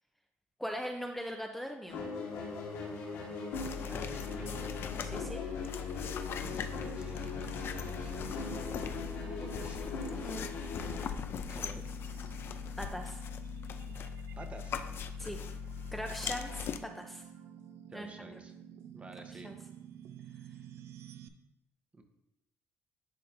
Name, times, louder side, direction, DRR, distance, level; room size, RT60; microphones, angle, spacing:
voice 1, 0.6-2.1 5.0-5.4 10.1-10.5 12.8-13.2 15.2-15.4 15.9-17.2 17.9-18.3 19.3-19.6, equal, 5° left, 3 dB, 0.6 m, -40 dB
sound 1, 1.9-11.0, left 3 dB, 85° left, 1.6 m, -40 dB
sound 2, 3.5-16.8, left 8 dB, 55° left, 0.5 m, -40 dB
voice 2, 3.7-4.8 6.4-7.2 7.8-9.8 11.5-11.9 14.4-14.7 17.9-18.5 18.9-19.5 22.0-22.1, right 2 dB, 25° right, 5 dB, 0.9 m, -49 dB
sound 3, 6.4-21.3, right 10 dB, 70° right, 0.5 m, -50 dB
10.5 x 4.1 x 2.6 m, 0.87 s
cardioid pair, 90°, 5 cm